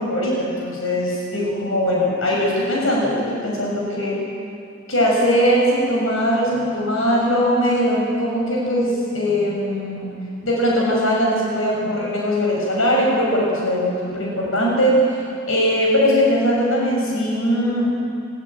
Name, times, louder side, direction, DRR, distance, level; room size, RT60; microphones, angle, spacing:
voice 1, 0.0-4.2 4.9-10.1 10.4-15.2 15.5-17.9, equal, 85° left, -3 dB, 6.8 m, -20 dB
23.5 x 22.5 x 9.1 m, 2.6 s
head